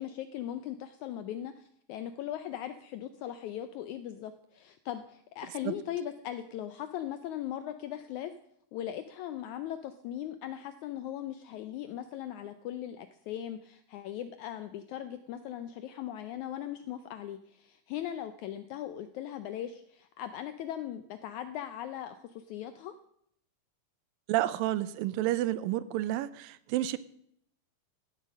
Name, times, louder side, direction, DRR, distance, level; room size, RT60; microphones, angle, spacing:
voice 1, 0.0-8.3 8.7-22.9, left 11 dB, 80° left, 11 dB, 1.7 m, -39 dB
voice 2, 24.3-27.0, right 14 dB, 85° right, 16 dB, 2.3 m, -30 dB
16.5 x 7.6 x 6.4 m, 0.71 s
omnidirectional pair, 4.1 m